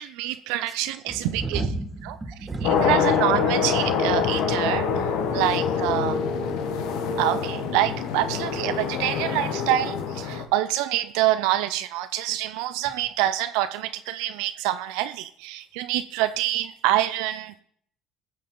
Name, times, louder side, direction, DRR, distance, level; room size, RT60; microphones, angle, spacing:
voice 1, 0.0-1.6 2.8-4.9 5.3-6.2 7.2-17.6, right 14 dB, 90° right, 11 dB, 0.4 m, -26 dB
voice 2, 1.1-3.6 5.2-5.4, right 2 dB, 25° right, 4 dB, 2.3 m, -33 dB
sound 1, 2.6-10.5, left 6 dB, 80° left, 1.2 m, -25 dB
19.0 x 6.5 x 3.8 m, 0.65 s
cardioid pair, 100°, 0 cm